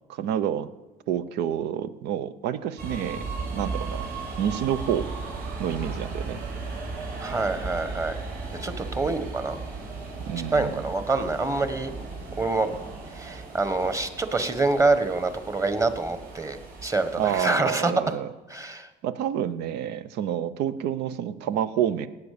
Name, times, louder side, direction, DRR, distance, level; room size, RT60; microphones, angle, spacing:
voice 1, 0.1-0.7 1.1-3.2 3.5-4.1 4.4-5.1 5.6-6.4 10.3-10.8 17.2-18.3 19.0-22.1, right 10 dB, 85° right, 14 dB, 0.8 m, -28 dB
sound 1, 2.8-17.4, right 3 dB, 65° right, 5.0 m, -36 dB
voice 2, 7.2-8.2 8.6-9.6 10.5-11.9 12.4-12.7 13.1-17.9 18.5-18.9, right 3 dB, 20° right, 10 dB, 1.4 m, -26 dB
17.5 x 8.3 x 6.8 m, 1.2 s
cardioid pair, 110°, 17 cm